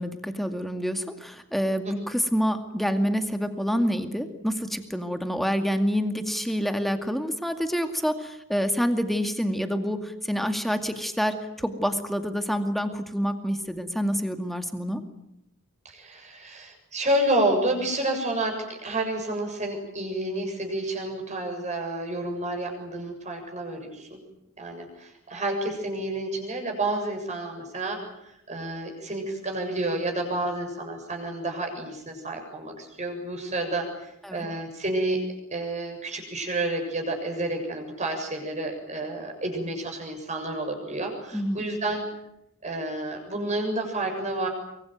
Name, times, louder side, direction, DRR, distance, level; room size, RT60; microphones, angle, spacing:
voice 1, 0.0-15.0 34.2-34.5 41.3-41.7, equal, ahead, 7 dB, 2.2 m, -27 dB
voice 2, 15.9-24.2 24.6-35.2 35.5-42.1 42.6-44.5, right 1 dB, 35° right, 2 dB, 7.1 m, -30 dB
24.0 x 23.5 x 9.2 m, 0.82 s
head